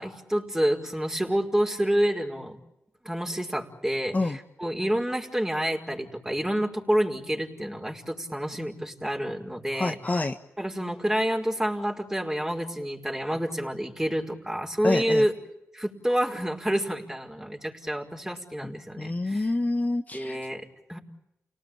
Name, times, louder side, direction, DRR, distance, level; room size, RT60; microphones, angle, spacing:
voice 1, 0.0-2.6 3.0-10.0 10.6-15.3 15.7-19.5 20.1-21.0, equal, 10° right, 3 dB, 5.1 m, -28 dB
voice 2, 9.7-10.4 14.8-15.2 18.6-20.4, left 2 dB, 30° left, 5 dB, 1.5 m, -27 dB
30.0 x 19.0 x 9.3 m, 0.88 s
cardioid pair, 55°, 5 cm